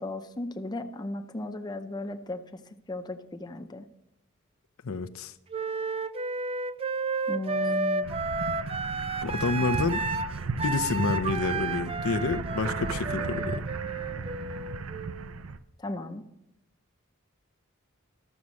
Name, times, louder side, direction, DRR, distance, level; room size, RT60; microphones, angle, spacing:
voice 1, 0.0-2.6 2.9-3.9 7.3-8.1 15.8-16.3, left 1 dB, 20° left, 6 dB, 0.6 m, -35 dB
voice 2, 4.8-5.3 9.2-10.0 10.6-13.6, left 4 dB, 80° left, 9 dB, 0.6 m, -29 dB
Wind instrument woodwind instrument, 5.5-15.3, right 3 dB, 25° right, 0.5 m, -32 dB
sound 1, 8.0-15.6, right 4 dB, 85° right, 0.6 m, -35 dB
12.5 x 7.1 x 6.3 m, 0.87 s
head